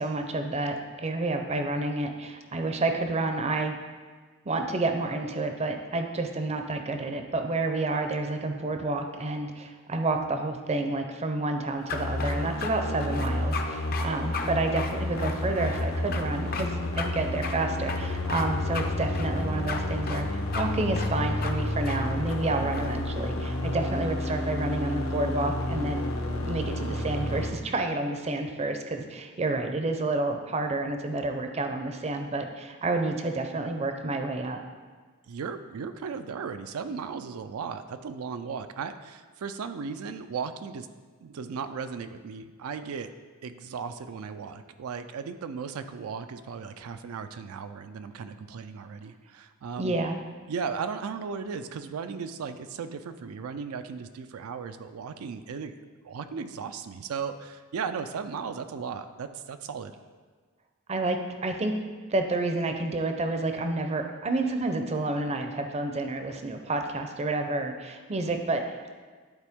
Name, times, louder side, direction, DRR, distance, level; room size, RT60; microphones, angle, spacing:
voice 1, 0.0-3.8 4.5-26.1 26.4-34.6 49.8-50.2 60.9-61.7 62.1-68.9, right 2 dB, 30° right, 5 dB, 0.5 m, -29 dB
sound 1, 11.9-27.5, left 1 dB, 70° left, 0.9 m, -30 dB
sound 2, 11.9-12.7 13.0-13.7 13.9-14.1 14.3-14.5 14.8-15.8 16.1-16.2 16.5-16.7 17.0-17.1 17.4-17.5 17.9-18.5 18.7-18.9 19.2-19.8 20.1-20.2 20.5-20.6 21.0-21.1 21.4-21.5 21.9-22.0 22.3-22.9, left 5 dB, 45° left, 0.5 m, -35 dB
voice 2, 35.3-40.9 41.2-43.1 43.4-50.0 50.5-59.9, right 6 dB, 85° right, 9 dB, 0.4 m, -36 dB
11.0 x 4.2 x 3.5 m, 1.4 s
head